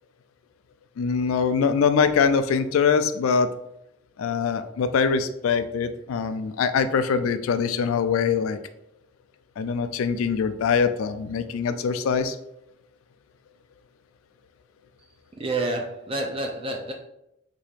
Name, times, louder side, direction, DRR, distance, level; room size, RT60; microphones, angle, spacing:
voice 1, 1.0-3.5 4.2-8.6 9.6-12.4, left 6 dB, 90° left, 10 dB, 0.3 m, -23 dB
voice 2, 15.4-16.9, right 2 dB, 25° right, 1 dB, 0.4 m, -28 dB
4.7 x 2.9 x 2.4 m, 0.84 s
head